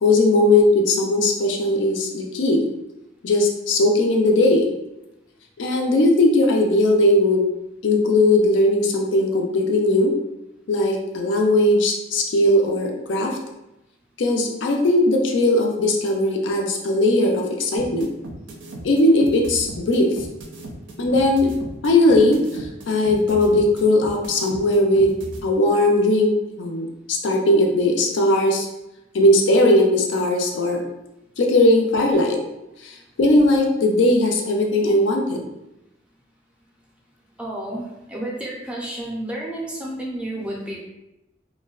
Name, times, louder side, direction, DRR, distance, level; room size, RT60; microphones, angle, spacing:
voice 1, 0.0-2.7 3.2-4.7 5.6-7.5 7.8-10.1 10.7-13.4 14.2-18.1 18.8-20.2 21.0-21.5 21.8-28.7 29.1-30.8 31.4-32.4 32.8-35.4, left 1 dB, 85° left, 1 dB, 0.4 m, -18 dB
sound 1, 17.8-25.4, right 1 dB, 85° right, 0.5 m, -36 dB
voice 2, 37.4-40.8, right 1 dB, 5° right, -4 dB, 0.4 m, -31 dB
2.5 x 2.1 x 2.3 m, 0.92 s
head